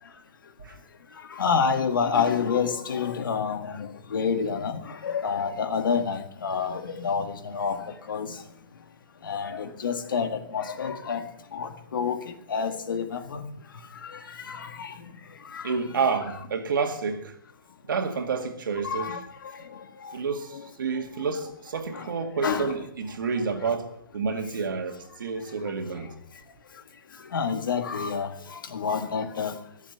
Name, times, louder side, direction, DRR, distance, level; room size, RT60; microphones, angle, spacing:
voice 1, 1.4-7.8 8.1-8.3 9.2-11.2 11.5-12.2 12.5-13.4 14.5-14.9 15.5-15.8 18.8-19.2 21.9-22.0 22.4-22.7 27.3-28.3 28.7-29.5, left 6 dB, 75° left, 1.7 m, -28 dB
voice 2, 15.6-17.3 17.9-19.2 20.1-23.9 24.1-26.1, right 5 dB, 75° right, 2.1 m, -29 dB
19.5 x 7.3 x 5.8 m
hypercardioid pair, 150°, 11 cm